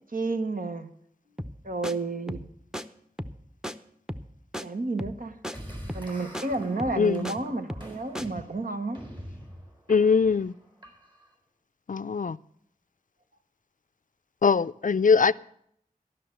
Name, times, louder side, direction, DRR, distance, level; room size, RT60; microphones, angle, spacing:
voice 1, 0.1-0.9 1.6-2.5 4.6-5.4 5.9-9.0, right 3 dB, 70° right, 1.2 m, -31 dB
sound 1, 1.4-1.6 1.8-1.9 2.3-2.5 2.7-2.8 3.2-3.4 3.6-3.7 4.1-4.3 4.5-4.7 5.0-5.2 5.4-5.6 5.9-6.1 6.3-6.5 6.8-7.4 7.7-8.3, equal, 5° right, 0.7 m, -35 dB
sound 2, 5.5-11.3, equal, 30° right, 4.3 m, -44 dB
voice 2, 7.0-7.3 9.9-10.5 11.9-12.4 14.4-15.3, left 5 dB, 60° left, 0.4 m, -22 dB
13.5 x 6.3 x 8.9 m
wide cardioid pair, 55°, 15 cm